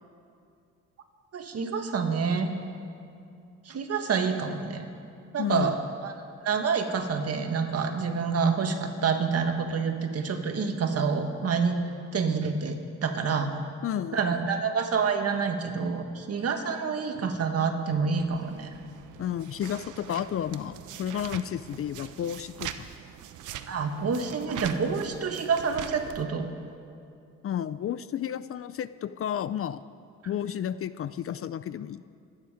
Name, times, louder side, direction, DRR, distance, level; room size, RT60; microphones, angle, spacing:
voice 1, 1.3-2.5 3.7-4.9 5.3-5.8 6.0-6.1 6.4-11.8 12.1-13.5 14.1-18.7 23.7-26.5, right 5 dB, 55° right, 5 dB, 1.8 m, -27 dB
voice 2, 5.4-5.7 13.8-14.2 19.2-22.9 27.4-29.8 30.3-32.2, left 9 dB, 50° left, 15 dB, 0.5 m, -32 dB
sound 1, 18.2-26.2, right 10 dB, 80° right, 0.8 m, -42 dB
26.0 x 9.8 x 5.0 m, 2.5 s
cardioid pair, 90°, 30 cm